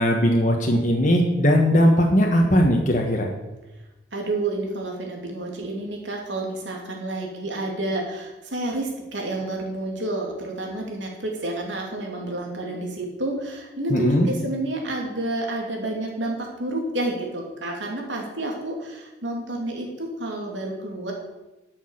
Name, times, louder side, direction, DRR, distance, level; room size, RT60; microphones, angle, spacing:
voice 1, 0.0-3.3 13.9-14.3, equal, 40° left, 1 dB, 1.3 m, -19 dB
voice 2, 4.1-21.1, right 2 dB, 75° right, 0 dB, 2.9 m, -29 dB
12.0 x 6.6 x 6.5 m, 1.0 s
head